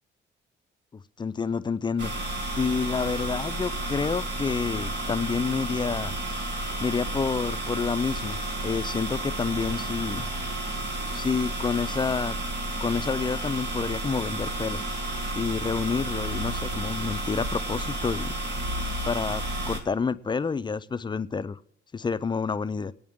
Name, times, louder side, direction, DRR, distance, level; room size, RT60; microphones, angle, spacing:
voice 1, 0.9-2.1 2.6-6.1 6.8-10.3 11.1-12.4 12.8-14.8 15.3-18.3 19.1-21.6 21.9-22.9, left 5 dB, 25° left, 14 dB, 0.5 m, -29 dB
sound 1, 2.0-19.8, right 1 dB, 60° right, 2.2 m, -31 dB
22.5 x 8.6 x 3.7 m, 0.75 s
cardioid pair, 90°, 20 cm